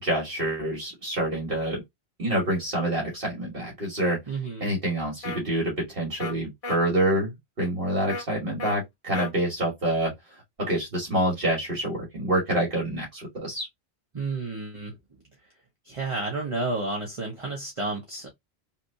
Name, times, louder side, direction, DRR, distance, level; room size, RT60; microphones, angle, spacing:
voice 1, 0.0-1.8 2.2-4.2 4.6-10.1 10.6-13.7, right 1 dB, 55° right, 1.6 m, -27 dB
voice 2, 4.3-4.7 14.1-15.0 15.8-18.3, right 3 dB, 30° right, 1.0 m, -31 dB
sound 1, 5.2-5.4 6.2-6.3 6.6-6.8 8.1-8.2 8.6-8.8 9.1-9.3, left 2 dB, 35° left, 0.9 m, -33 dB
3.3 x 2.9 x 2.6 m
omnidirectional pair, 1.1 m